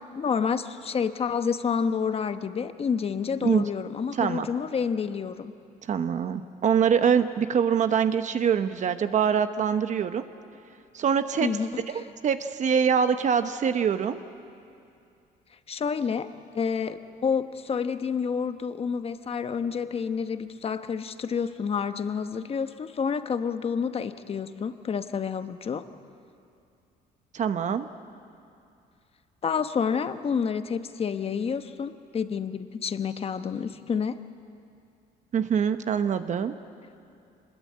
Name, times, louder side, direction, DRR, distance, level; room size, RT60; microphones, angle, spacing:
voice 1, 0.1-5.5 11.4-12.0 15.7-16.3 16.5-25.9 29.4-34.2, left 6 dB, 35° left, 10 dB, 1.1 m, -29 dB
voice 2, 5.9-10.2 10.9-11.5 11.9-14.2 27.3-27.9 35.3-36.5, right 7 dB, 45° right, 9 dB, 1.0 m, -24 dB
24.5 x 21.0 x 8.7 m, 2.5 s
cardioid pair, 110°, 17 cm